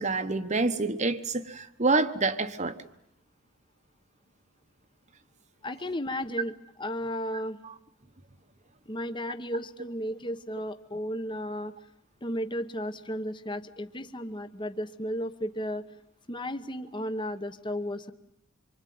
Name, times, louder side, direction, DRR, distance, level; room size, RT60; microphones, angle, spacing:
voice 1, 0.0-2.8 7.6-7.7, right 3 dB, 35° right, 1.1 m, -27 dB
voice 2, 5.6-6.5 6.8-7.6 8.9-11.7 12.2-15.8 16.3-18.1, equal, 20° left, 1.1 m, -34 dB
26.0 x 24.0 x 9.4 m
head